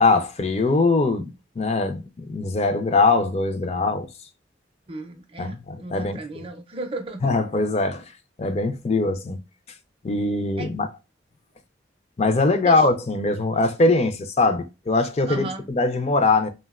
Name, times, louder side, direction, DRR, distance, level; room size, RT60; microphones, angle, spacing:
voice 1, 0.0-4.1 5.4-6.2 7.2-8.1 8.4-9.4 10.0-10.9 12.2-15.5 15.8-16.5, left 3 dB, 35° left, 0.4 m, -22 dB
voice 2, 4.9-7.3 10.6-10.7 12.6-12.9 15.3-15.7, right 2 dB, 30° right, 0.4 m, -35 dB
3.5 x 2.1 x 2.3 m
head